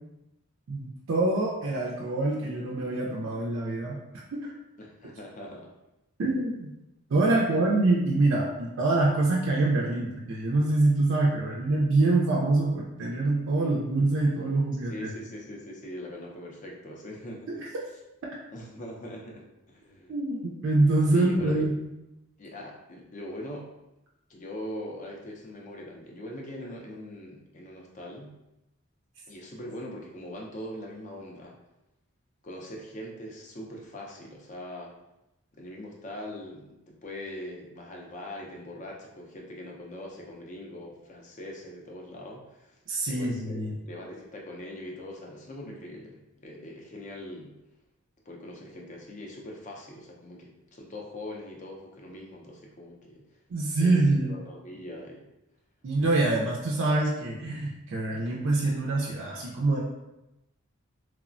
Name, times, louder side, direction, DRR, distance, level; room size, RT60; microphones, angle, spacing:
voice 1, 0.7-4.0 4.3-4.5 6.2-6.7 7.1-14.9 20.1-21.8 42.9-43.7 53.5-54.3 55.8-59.8, right 2 dB, 60° right, -4 dB, 0.4 m, -25 dB
voice 2, 4.8-5.7 7.2-7.6 14.8-17.8 18.5-20.2 21.1-21.7 22.4-23.7 24.3-28.3 29.3-31.6 32.4-34.9 35.6-42.8 43.1-47.5 48.3-53.3 53.8-55.3, left 1 dB, 35° left, -1 dB, 0.4 m, -41 dB
3.1 x 2.0 x 2.4 m, 0.92 s
head